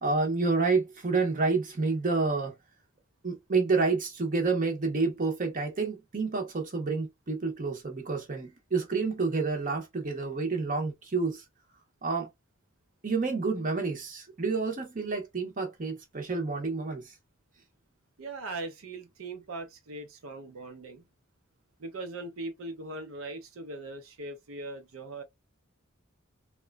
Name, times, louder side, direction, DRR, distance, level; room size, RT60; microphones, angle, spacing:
voice 1, 0.0-2.5 3.2-11.4 12.0-12.3 13.0-17.1, right 4 dB, 40° right, 0.7 m, -29 dB
voice 2, 18.2-21.0 21.8-25.2, right 2 dB, 75° right, 0.6 m, -40 dB
2.9 x 2.2 x 2.3 m
head